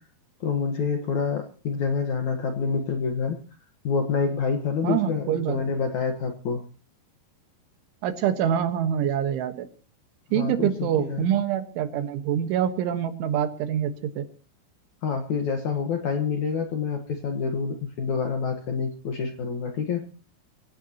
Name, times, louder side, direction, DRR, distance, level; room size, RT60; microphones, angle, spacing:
voice 1, 0.4-3.4 3.8-6.6 10.3-11.3 15.0-20.1, left 5 dB, 65° left, 4 dB, 1.9 m, -27 dB
voice 2, 4.8-5.6 8.0-9.7 10.3-14.3, right 9 dB, 90° right, 8 dB, 3.9 m, -25 dB
24.5 x 16.5 x 3.0 m, 0.37 s
omnidirectional pair, 5.3 m